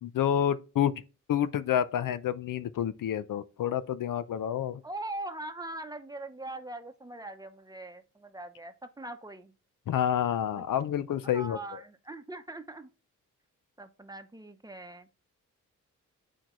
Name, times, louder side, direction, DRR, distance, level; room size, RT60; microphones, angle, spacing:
voice 1, 0.0-0.9 1.3-4.8 9.9-11.6, left 10 dB, 85° left, 0.6 m, -28 dB
voice 2, 4.8-9.5 10.5-10.6 11.2-12.9 13.8-15.1, right 2 dB, 10° right, 0.8 m, -41 dB
11.0 x 4.5 x 3.1 m
wide cardioid pair, 125°, 32 cm